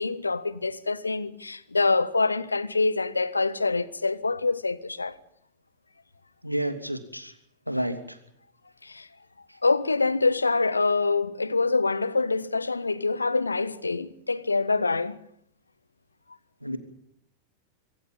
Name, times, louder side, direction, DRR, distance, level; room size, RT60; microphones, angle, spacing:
voice 1, 0.0-5.2 8.8-9.1 9.6-15.2, left 3 dB, 80° left, 1.4 m, -25 dB
voice 2, 6.4-7.3 7.7-8.2 16.6-16.8, right 1 dB, 90° right, 2.9 m, -30 dB
25.5 x 25.5 x 5.5 m
figure-of-eight pair, 90°, 0 cm